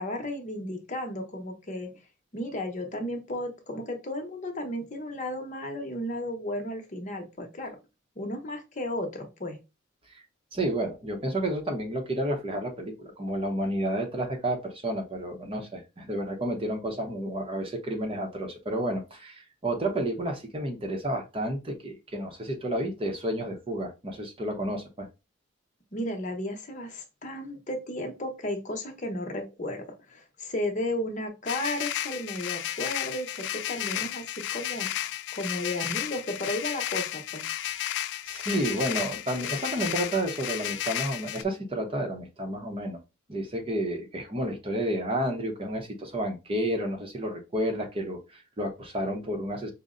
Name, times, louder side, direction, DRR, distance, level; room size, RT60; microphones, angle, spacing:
voice 1, 0.0-1.9 2.3-7.8 8.2-9.6 25.9-35.0 35.3-37.4, left 1 dB, 40° left, 3 dB, 0.9 m, -34 dB
voice 2, 10.5-25.1 37.8-38.0 38.3-43.0 43.3-49.7, right 1 dB, 30° right, 3 dB, 0.7 m, -31 dB
sound 1, 31.5-41.4, left 12 dB, 60° left, 0.3 m, -33 dB
5.3 x 2.1 x 3.7 m, 0.27 s
head